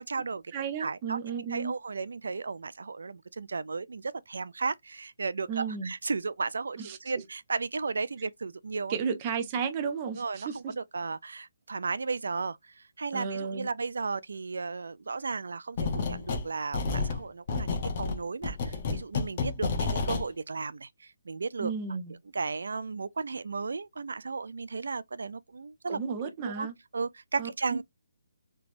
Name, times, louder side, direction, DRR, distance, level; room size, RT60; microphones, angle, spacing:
voice 1, 0.0-0.4 0.8-1.2 1.5-9.0 10.1-21.7 22.3-26.0 26.4-26.7 26.9-27.8, right 4 dB, 75° right, 0.3 m, -34 dB
voice 2, 0.5-1.7 5.5-5.9 6.8-7.0 8.9-10.7 13.1-13.7 21.6-22.1 25.9-26.7 27.4-27.8, right 6 dB, 15° right, 0.5 m, -33 dB
sound 1, 15.8-16.5 16.7-20.3, left 4 dB, 25° left, 0.7 m, -30 dB
3.3 x 3.0 x 2.4 m
hypercardioid pair, 180°, 0 cm